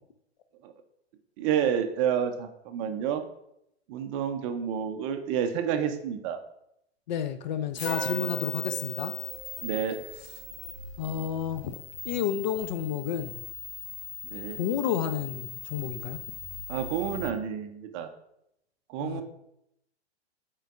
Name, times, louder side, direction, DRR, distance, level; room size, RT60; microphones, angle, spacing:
voice 1, 1.4-3.2 3.9-6.4 9.6-10.0 14.2-14.6 16.7-18.1 18.9-19.2, right 8 dB, 30° right, 7 dB, 0.5 m, -29 dB
voice 2, 7.1-9.1 11.0-11.8 12.0-13.4 14.6-16.2 19.0-19.2, left 9 dB, 45° left, 10 dB, 0.4 m, -31 dB
sound 1, 7.7-17.3, left 5 dB, 75° left, 1.5 m, -39 dB
sound 2, 7.9-10.4, right 1 dB, 90° left, 1.3 m, -39 dB
8.8 x 4.5 x 2.4 m, 0.79 s
figure-of-eight pair, 110°, 33 cm